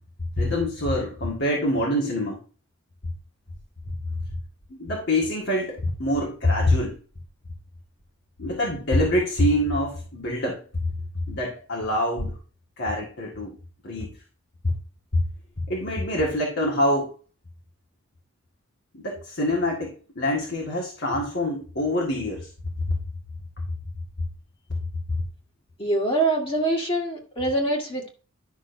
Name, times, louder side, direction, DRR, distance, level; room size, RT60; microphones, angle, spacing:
voice 1, 0.4-2.4 4.2-4.3 4.7-7.0 8.4-10.6 11.3-12.3 12.8-13.5 13.8-14.1 15.1-15.2 15.7-17.1 18.9-22.5 22.9-23.0 25.1-25.2, left 1 dB, 60° left, -2 dB, 1.8 m, -25 dB
voice 2, 25.8-28.1, right 2 dB, 25° left, 0 dB, 1.8 m, -24 dB
11.0 x 6.3 x 2.7 m, 0.38 s
head